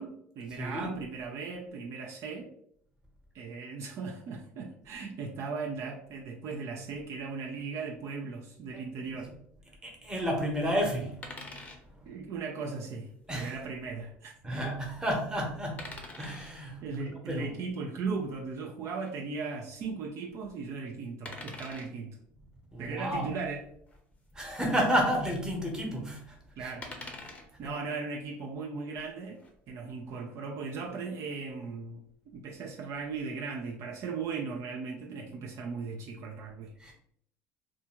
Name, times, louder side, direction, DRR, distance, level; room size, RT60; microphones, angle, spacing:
voice 1, 0.0-2.5 3.3-9.3 12.1-14.3 16.8-22.2 22.8-23.6 26.6-27.1 27.6-29.4 29.7-32.0 32.3-36.7, right 4 dB, 55° right, 0 dB, 0.5 m, -37 dB
voice 2, 0.5-0.9 8.7-9.2 9.8-11.6 11.9-12.0 13.3-13.5 14.4-15.9 16.1-17.6 22.7-23.3 24.3-26.7 27.6-27.7 36.8-36.9, equal, 10° right, 0 dB, 1.0 m, -32 dB
sound 1, 11.2-11.8 13.2-13.4 15.8-16.5 19.0-19.1 21.2-21.9 23.9-24.0 24.3-24.4 26.8-27.5 29.2-29.5, left 2 dB, 25° left, 0.6 m, -44 dB
2.6 x 2.3 x 2.9 m, 0.67 s
supercardioid pair, 90°, 6 cm